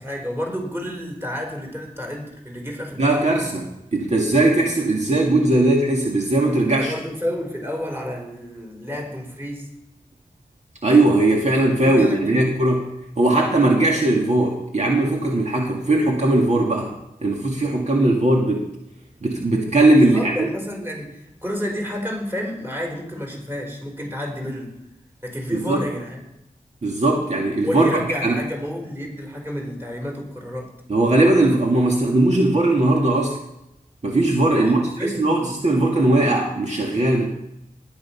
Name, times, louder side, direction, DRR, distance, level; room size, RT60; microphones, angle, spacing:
voice 1, 0.0-3.2 6.8-9.7 11.6-12.6 20.0-24.8 25.2-26.2 27.6-30.7 34.5-35.3, equal, 15° right, 1 dB, 4.3 m, -30 dB
voice 2, 3.0-6.9 10.8-12.8 13.2-16.9 17.2-18.7 19.2-20.5 25.5-25.9 26.8-28.4 30.9-33.4 34.0-37.3, right 2 dB, 50° right, 0 dB, 2.0 m, -19 dB
20.0 x 9.0 x 5.8 m, 0.85 s
wide cardioid pair, 95°, 15 cm